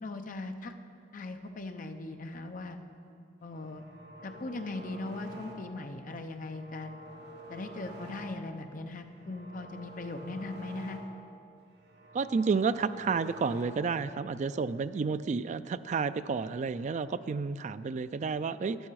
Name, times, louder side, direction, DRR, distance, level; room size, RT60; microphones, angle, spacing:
voice 1, 0.0-0.7 1.1-2.8 3.4-3.8 4.2-6.9 7.5-11.0, left 2 dB, 45° left, 7 dB, 0.7 m, -39 dB
sound 1, 3.6-6.0 6.3-8.7 9.0-11.4 11.7-14.1, right 1 dB, 65° right, 1.2 m, -48 dB
voice 2, 12.1-18.8, right 5 dB, 40° right, 13 dB, 0.3 m, -31 dB
13.5 x 10.5 x 4.7 m, 2.5 s
head